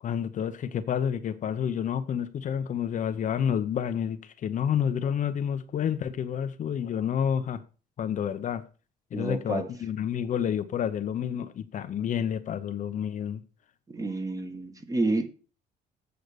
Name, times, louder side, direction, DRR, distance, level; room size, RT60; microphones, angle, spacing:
voice 1, 0.0-7.6 8.0-8.6 9.1-13.4, left 8 dB, 50° left, 0.8 m, -29 dB
voice 2, 9.1-9.7 13.9-15.3, right 2 dB, 20° right, 1.6 m, -29 dB
8.0 x 5.0 x 6.7 m
cardioid pair, 110°, 17 cm